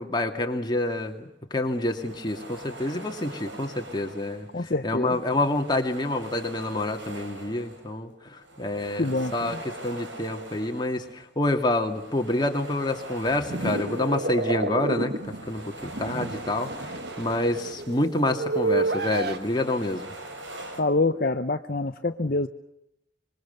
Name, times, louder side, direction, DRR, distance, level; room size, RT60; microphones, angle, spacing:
voice 1, 0.0-20.0, left 1 dB, 25° left, 3 dB, 2.3 m, -28 dB
sound 1, 0.9-1.1 1.6-4.6 5.0-8.0 8.3-11.3 11.7-18.1 18.4-20.8, right 2 dB, 80° right, 4.9 m, -43 dB
voice 2, 4.5-5.2 9.0-9.6 20.8-22.5, left 2 dB, 50° left, 7 dB, 0.9 m, -26 dB
sound 2, 13.3-19.4, right 2 dB, 60° right, 1.5 m, -30 dB
26.0 x 23.0 x 6.8 m, 0.84 s
head